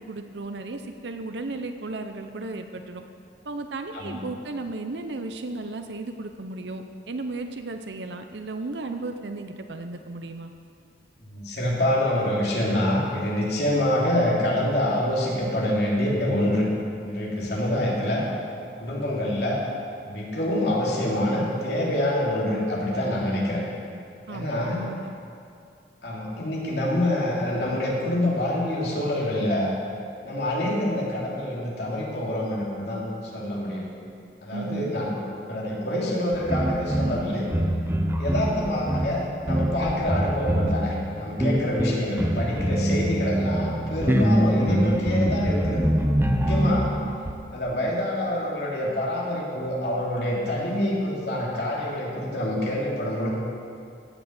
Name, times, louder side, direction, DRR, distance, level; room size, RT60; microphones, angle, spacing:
voice 1, 0.0-3.0 3.4-10.5 24.3-25.2 34.5-34.9, right 2 dB, 85° right, 6 dB, 0.7 m, -34 dB
voice 2, 11.2-16.7 17.0-18.3 18.8-19.6 20.1-23.6 24.3-24.8 26.0-29.7 30.2-33.0 33.3-33.9 34.4-35.1 35.5-37.5 38.2-45.9 46.3-46.9 47.5-53.3, left 1 dB, 70° left, -4 dB, 3.0 m, -26 dB
sound 1, 36.3-47.3, right 1 dB, 15° right, 0.7 m, -24 dB
16.0 x 6.2 x 8.0 m, 2.4 s
head